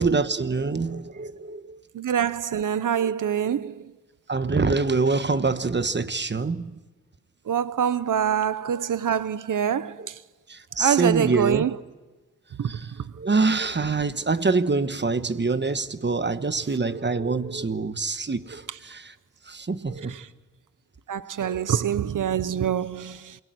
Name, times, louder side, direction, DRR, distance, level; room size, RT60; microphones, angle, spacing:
voice 1, 0.0-1.8 2.9-3.0 3.4-3.5 4.3-6.7 10.0-10.1 10.5-11.7 12.6-12.9 13.2-19.1 19.5-20.2 21.4-21.6, right 4 dB, 35° right, 1.3 m, -25 dB
voice 2, 1.9-3.8 7.5-10.2 10.8-11.8 12.6-12.8 20.1-20.3 21.1-23.4, right 9 dB, 85° right, 0.8 m, -25 dB
28.0 x 22.5 x 7.9 m
wide cardioid pair, 115°, 31 cm